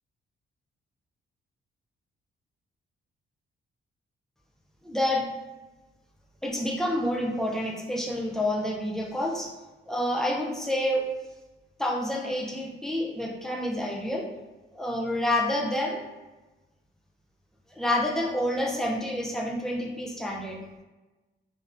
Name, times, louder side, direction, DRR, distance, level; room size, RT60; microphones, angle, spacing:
voice 1, 4.8-5.3 6.4-9.5 9.9-11.0 11.8-14.3 14.7-16.0 17.7-20.6, left 1 dB, ahead, -2 dB, 0.4 m, -28 dB
3.6 x 2.6 x 2.5 m, 1.1 s
wide cardioid pair, 160°, 21 cm